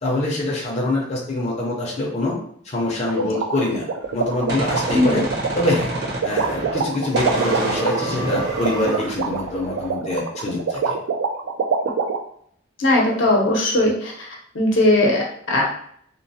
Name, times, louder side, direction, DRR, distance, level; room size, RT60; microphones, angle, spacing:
voice 1, 0.0-2.4 2.7-3.9 4.1-5.3 5.5-5.9 6.2-11.0, left 1 dB, 35° left, -3 dB, 0.5 m, -24 dB
sound 1, 3.1-12.2, right 5 dB, 80° right, 0.3 m, -24 dB
Gunshot gunfire, 4.0-6.9 7.2-9.9, right 1 dB, 60° right, 0.9 m, -29 dB
sound 2, 7.0-9.3, right 3 dB, 20° right, 0.5 m, -30 dB
voice 2, 12.8-14.3 14.5-15.6, left 1 dB, 80° left, -2 dB, 0.7 m, -18 dB
2.9 x 2.0 x 2.6 m, 0.65 s
head